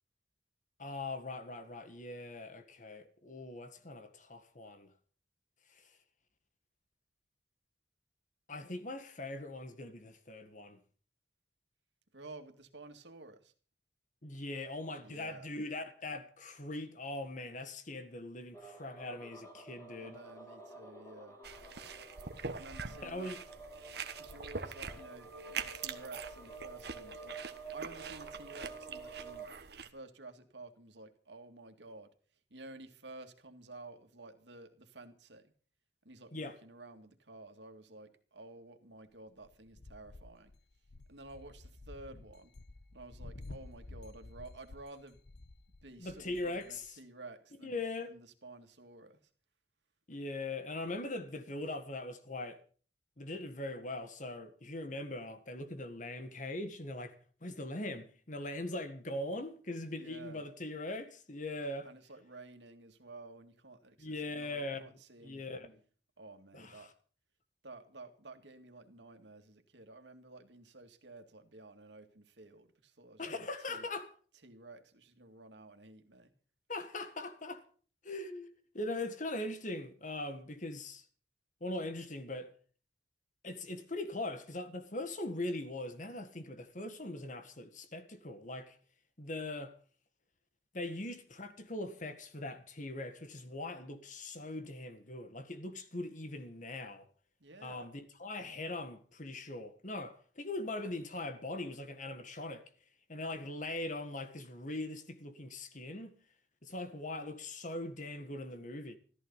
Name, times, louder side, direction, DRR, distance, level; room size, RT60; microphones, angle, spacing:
voice 1, 0.8-4.9 5.7-5.9 8.5-10.8 14.2-20.2 23.0-23.4 36.3-36.5 46.0-46.8 47.6-48.1 50.1-52.6 53.2-61.9 64.0-64.9 65.2-65.8 66.5-66.9 73.2-74.1 76.7-77.6 78.0-81.0 81.6-82.5 83.4-88.8 89.2-89.7 90.7-97.1 97.6-102.6 103.1-106.1 106.6-109.0, left 2 dB, 45° left, 1.7 m, -41 dB
voice 2, 12.1-13.5 15.0-15.5 20.0-21.4 22.5-23.4 24.2-29.5 29.8-32.1 32.5-35.5 36.0-40.5 41.1-42.5 42.9-45.2 45.8-49.2 59.9-60.4 61.8-65.6 66.2-66.9 67.6-73.9 74.4-76.3 97.4-97.9, right 2 dB, 80° right, 2.2 m, -52 dB
sound 1, 18.5-29.5, right 3 dB, 15° left, 3.0 m, -50 dB
sound 2, 21.4-29.9, right 5 dB, 65° right, 1.3 m, -44 dB
sound 3, 39.4-46.9, left 2 dB, 70° left, 1.0 m, -52 dB
14.5 x 14.0 x 5.6 m
head